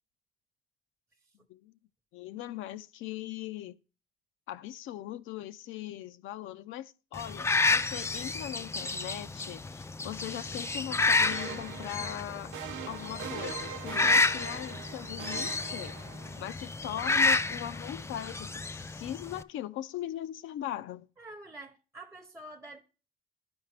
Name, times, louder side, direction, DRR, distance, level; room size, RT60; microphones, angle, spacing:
voice 1, 2.1-3.8 4.5-12.5 12.9-16.0 16.4-21.1, left 12 dB, 80° left, 0.5 m, -40 dB
sound 1, 7.2-19.4, left 3 dB, 15° left, 0.3 m, -30 dB
sound 2, 11.2-16.5, right 9 dB, 85° right, 0.6 m, -42 dB
voice 2, 21.2-22.8, right 1 dB, 15° right, 0.8 m, -47 dB
11.0 x 4.7 x 3.3 m
cardioid pair, 90°, 20 cm